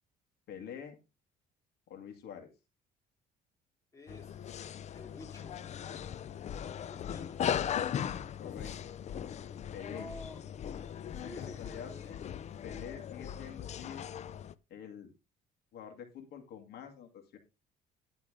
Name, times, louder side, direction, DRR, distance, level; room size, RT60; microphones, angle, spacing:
voice 1, 0.5-1.0 1.9-2.5 8.0-8.7 9.7-10.1 11.3-11.9 12.6-14.1 14.7-15.1 15.7-17.4, left 8 dB, 75° left, 3 dB, 2.1 m, -46 dB
voice 2, 3.9-4.5 4.9-6.0 6.9-7.5 9.9-10.5 11.1-12.2, left 2 dB, 15° left, 1 dB, 2.6 m, -51 dB
sound 1, 4.1-14.5, left 9 dB, 40° left, 0.5 m, -38 dB
11.5 x 3.8 x 4.9 m, 0.27 s
cardioid pair, 110°, 17 cm